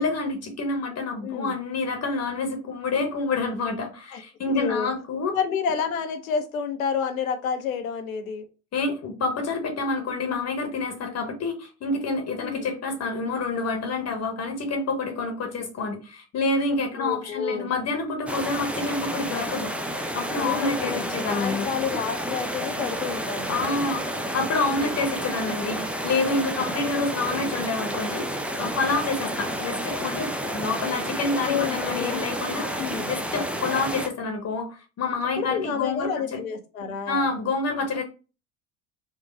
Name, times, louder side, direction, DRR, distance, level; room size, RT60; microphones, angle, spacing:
voice 1, 0.0-5.4 8.7-19.7 20.1-21.7 23.5-32.8 33.1-36.4 37.1-38.0, left 3 dB, 40° left, 4 dB, 1.0 m, -28 dB
voice 2, 1.2-1.5 4.1-4.2 4.5-4.9 5.3-8.4 12.4-12.7 17.0-17.7 20.3-21.0 21.3-23.8 24.7-24.9 27.2-27.6 31.5-32.3 32.7-33.1 35.4-37.3, left 6 dB, 80° left, 7 dB, 0.8 m, -29 dB
Larrun Riviere close distance, 18.3-34.1, right 1 dB, 5° right, 0.4 m, -30 dB
4.6 x 2.3 x 3.3 m, 0.33 s
hypercardioid pair, 65°, 41 cm